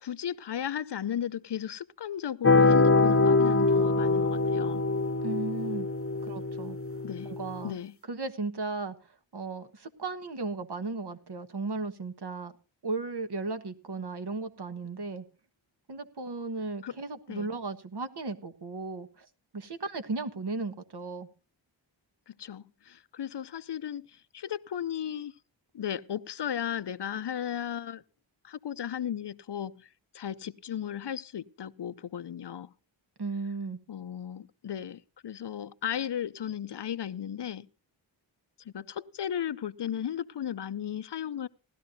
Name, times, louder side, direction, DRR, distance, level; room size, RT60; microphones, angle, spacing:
voice 1, 0.0-4.8 7.0-7.3 7.6-7.9 16.8-16.9 17.3-17.5 22.3-25.3 25.7-28.0 28.4-29.9 30.1-32.7 33.9-37.7 38.7-41.5, left 9 dB, 60° left, 0.7 m, -35 dB
sound 1, 2.4-7.7, left 3 dB, 30° left, 1.0 m, -24 dB
voice 2, 5.2-5.9 6.2-6.8 7.2-7.8 8.1-8.9 9.3-12.5 12.8-15.2 15.9-19.3 19.5-21.3 33.2-33.8, right 3 dB, 55° right, 1.5 m, -35 dB
18.0 x 12.5 x 2.7 m
cardioid pair, 65°, 46 cm